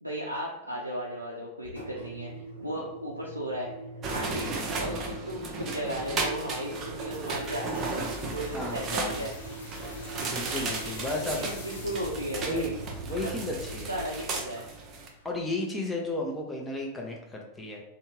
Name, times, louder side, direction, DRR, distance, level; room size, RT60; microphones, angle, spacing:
voice 1, 0.0-3.7 4.1-7.7 8.3-9.3 11.2-12.8 13.1-13.3 13.9-14.6, equal, 85° right, -3 dB, 0.3 m, -35 dB
Engine, 1.6-15.6, right 1 dB, 80° left, 1.0 m, -43 dB
sound 1, 4.0-15.1, right 3 dB, 30° right, 0.5 m, -35 dB
sound 2, 7.1-13.7, left 2 dB, 65° left, 0.7 m, -47 dB
voice 2, 8.5-9.2 9.9-11.4 12.5-12.7 13.0-13.9 15.2-17.8, left 2 dB, 10° left, -1 dB, 0.7 m, -34 dB
2.7 x 2.2 x 3.0 m, 0.90 s
figure-of-eight pair, 90°, 0 cm